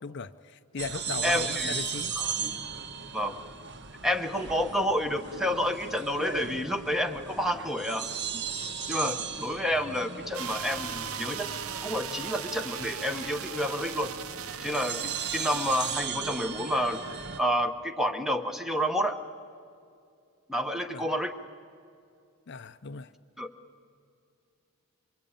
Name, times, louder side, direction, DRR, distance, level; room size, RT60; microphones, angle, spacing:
voice 1, 0.0-2.1 20.9-21.0 22.5-23.1, left 4 dB, 50° left, 0.6 m, -37 dB
sound 1, 0.8-17.4, right 6 dB, 50° right, 1.2 m, -37 dB
voice 2, 1.2-1.7 2.2-2.3 3.1-3.4 4.0-8.1 8.3-8.4 8.9-11.5 11.8-14.1 14.6-17.0 17.4-19.2 20.5-21.4 23.4-23.5, equal, ahead, 1.0 m, -29 dB
sound 2, 10.3-16.0, right 8 dB, 80° right, 0.8 m, -38 dB
26.5 x 24.5 x 8.8 m
head